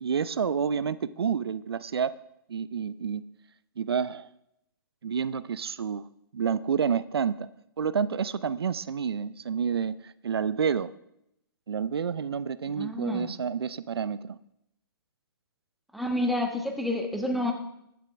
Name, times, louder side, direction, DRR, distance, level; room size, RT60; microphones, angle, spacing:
voice 1, 0.0-2.1 2.5-3.2 3.8-4.3 5.0-6.1 6.3-7.5 7.8-10.9 11.7-14.4, right 7 dB, 80° right, 17 dB, 0.5 m, -29 dB
voice 2, 12.7-13.3 15.9-17.5, left 1 dB, ahead, 4 dB, 1.3 m, -29 dB
15.0 x 11.0 x 3.4 m, 0.79 s
hypercardioid pair, 130°, 13 cm